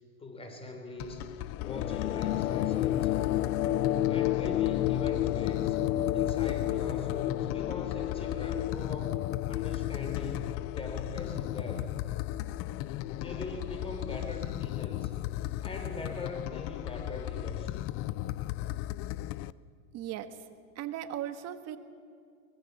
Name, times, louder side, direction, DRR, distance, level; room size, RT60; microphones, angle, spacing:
voice 1, 0.2-1.3 1.6-3.2 4.1-5.8 6.1-9.2 9.5-12.0 13.1-15.2 15.6-17.9, left 2 dB, 15° left, 5 dB, 4.0 m, -41 dB
sound 1, 1.0-19.5, left 15 dB, 35° left, 0.5 m, -36 dB
sound 2, 1.6-16.4, left 13 dB, 85° left, 0.8 m, -33 dB
voice 2, 19.9-20.4 20.7-21.8, right 11 dB, 40° right, 9 dB, 1.6 m, -37 dB
23.5 x 21.5 x 7.2 m, 2.2 s
supercardioid pair, 125°, 41 cm